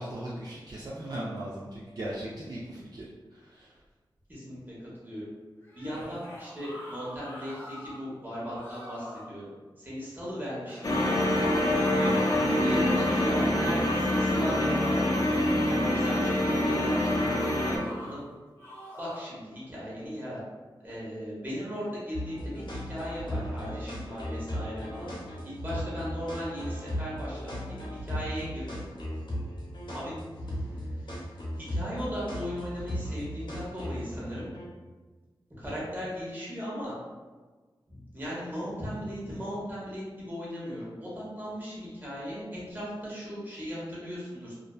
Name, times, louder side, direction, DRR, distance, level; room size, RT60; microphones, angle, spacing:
voice 1, 0.0-3.8 5.9-6.2 11.9-12.2, right 1 dB, 50° right, -7 dB, 0.4 m, -38 dB
voice 2, 4.3-5.3 5.7-7.5 7.8-9.5 9.8-11.4 12.6-18.2 19.0-20.4 20.8-25.1 25.4-28.8 29.9-31.3 31.6-34.5 35.6-36.9 37.9-44.5, equal, 20° right, -7 dB, 1.0 m, -37 dB
sound 1, 5.6-8.0 8.4-9.3 10.7-13.4 13.8-14.8 16.7-18.1 18.6-19.3, left 1 dB, 25° left, 0.8 m, -45 dB
sound 2, 10.8-17.8, left 1 dB, 45° left, 0.4 m, -25 dB
sound 3, 22.1-34.7, equal, 75° left, 0.8 m, -36 dB
2.4 x 2.1 x 2.3 m, 1.4 s
wide cardioid pair, 75°, 9 cm